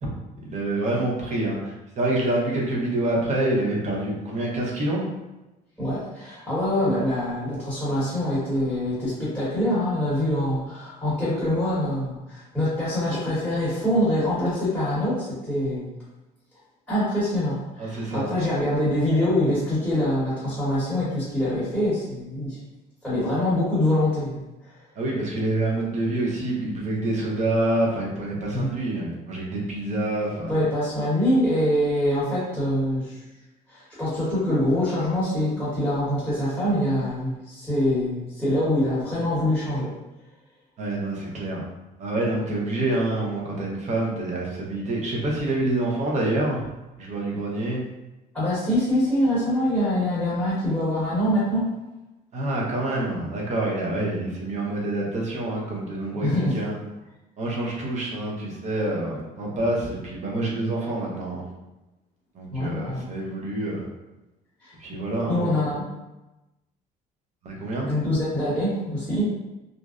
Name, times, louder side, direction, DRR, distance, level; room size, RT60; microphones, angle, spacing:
voice 1, 0.4-5.1 17.8-18.3 25.0-30.6 40.8-41.6 42.0-46.6 47.0-47.8 52.3-56.8 57.4-61.5 62.3-63.8 64.8-65.5 67.4-67.9, right 2 dB, 45° right, -3 dB, 0.7 m, -27 dB
voice 2, 5.8-15.9 16.9-22.6 23.0-24.4 28.5-28.7 30.5-33.2 33.7-39.9 48.3-51.7 56.2-56.6 62.5-63.1 64.6-64.7 65.3-65.8 67.9-69.2, left 1 dB, ahead, -10 dB, 1.0 m, -24 dB
2.5 x 2.0 x 2.4 m, 1.0 s
cardioid pair, 110°, 17 cm